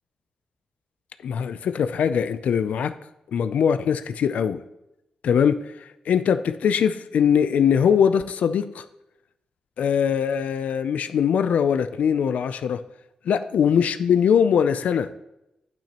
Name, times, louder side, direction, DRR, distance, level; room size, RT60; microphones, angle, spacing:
voice 1, 1.2-2.9 3.3-4.6 5.2-8.8 9.8-12.8 13.3-15.1, left 7 dB, 80° left, 10 dB, 0.4 m, -21 dB
8.9 x 8.5 x 2.9 m, 0.88 s
wide cardioid pair, 120°, 2 cm